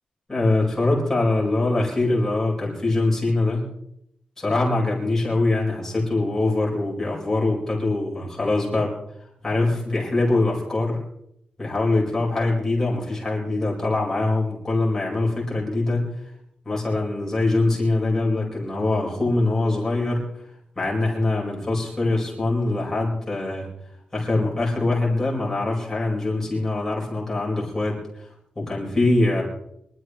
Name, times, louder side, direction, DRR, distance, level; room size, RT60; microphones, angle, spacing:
voice 1, 0.3-3.7 4.4-8.9 9.4-11.0 11.6-16.1 16.6-20.2 20.8-23.7 24.1-28.3 28.6-29.4, left 2 dB, 15° left, -4 dB, 4.7 m, -23 dB
24.0 x 13.0 x 3.1 m, 0.76 s
wide cardioid pair, 170°, 3 cm